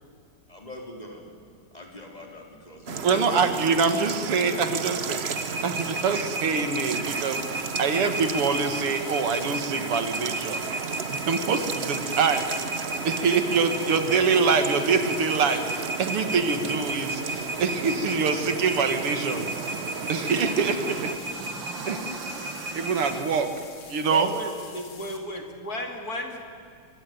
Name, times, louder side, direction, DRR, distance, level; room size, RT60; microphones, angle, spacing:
voice 1, 0.5-1.2 1.7-3.4 4.2-4.7, left 1 dB, 15° left, 0 dB, 4.1 m, -41 dB
sound 1, 2.9-21.2, right 6 dB, 45° right, 0.9 m, -34 dB
voice 2, 3.0-5.2 5.6-10.6 11.1-12.5 12.7-19.8 20.1-21.1 21.9-22.2 22.7-23.5 23.9-24.3, right 5 dB, 85° right, 8 dB, 2.8 m, -25 dB
sound 2, 5.2-23.2, right 2 dB, 60° right, 2.6 m, -35 dB
sound 3, 6.9-25.2, left 4 dB, 75° left, 3.6 m, -47 dB
voice 3, 24.1-26.4, left 2 dB, 45° left, 3 dB, 2.8 m, -34 dB
25.5 x 22.5 x 9.5 m, 2.2 s
omnidirectional pair, 2.4 m